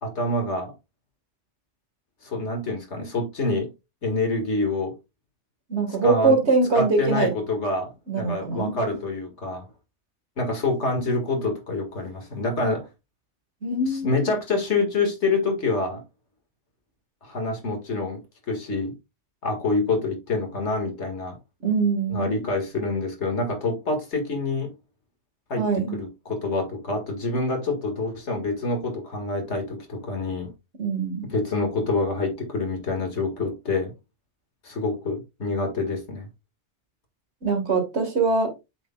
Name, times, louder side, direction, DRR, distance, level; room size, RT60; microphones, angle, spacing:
voice 1, 0.0-0.7 2.2-3.7 4.0-4.9 6.0-6.4 6.7-9.7 10.4-12.9 13.8-16.0 17.2-18.2 18.5-18.9 19.4-21.4 22.1-24.7 25.5-30.5 31.3-33.9 34.6-36.3, left 2 dB, 90° left, 2.2 m, -26 dB
voice 2, 5.7-7.3 8.1-8.7 13.6-14.3 21.6-22.4 25.6-26.0 30.8-31.3 37.4-38.5, right 3 dB, 75° right, 2.1 m, -23 dB
7.9 x 6.5 x 2.3 m
omnidirectional pair, 1.1 m